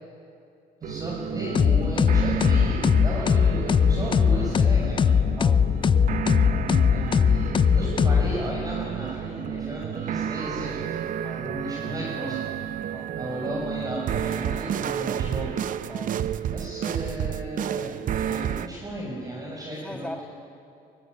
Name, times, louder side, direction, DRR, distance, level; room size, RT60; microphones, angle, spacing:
voice 1, 0.8-5.1 6.9-11.0 11.3-12.4 13.1-15.6 16.5-20.2, right 1 dB, 20° right, -5 dB, 6.7 m, -34 dB
sound 1, 0.8-18.7, right 9 dB, 50° right, 0.7 m, -31 dB
sound 2, 1.6-8.7, left 7 dB, 30° left, 0.5 m, -21 dB
voice 2, 5.4-5.7 11.2-11.5 12.9-13.2 15.9-16.2 19.8-20.2, left 1 dB, 5° left, 4 dB, 2.0 m, -39 dB
23.5 x 16.0 x 9.7 m, 2.5 s
cardioid pair, 110°, 17 cm